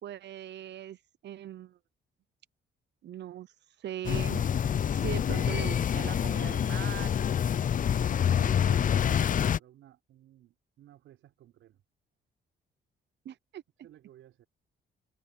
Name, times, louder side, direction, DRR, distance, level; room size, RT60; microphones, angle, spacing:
voice 1, 0.0-1.8 3.0-3.5 3.8-4.5 4.9-7.3 13.2-13.6, right 11 dB, 60° right, 0.8 m, -40 dB
sound 1, 4.0-9.6, left 8 dB, 40° left, 0.6 m, -27 dB
voice 2, 7.9-11.8 13.8-14.5, right 12 dB, 80° right, 4.5 m, -55 dB
cardioid pair, 90°, 20 cm